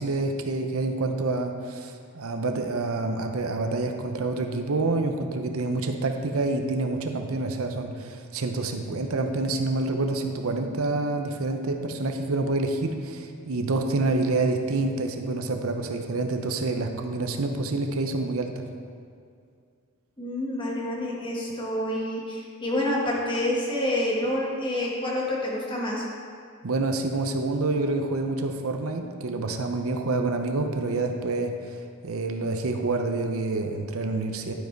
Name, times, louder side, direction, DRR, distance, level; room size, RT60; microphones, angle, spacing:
voice 1, 0.0-18.6 26.6-31.5 32.0-34.5, right 2 dB, 75° right, 4 dB, 0.7 m, -27 dB
voice 2, 20.2-26.0, left 1 dB, 20° left, -4 dB, 1.4 m, -28 dB
11.5 x 5.3 x 4.6 m, 2.3 s
head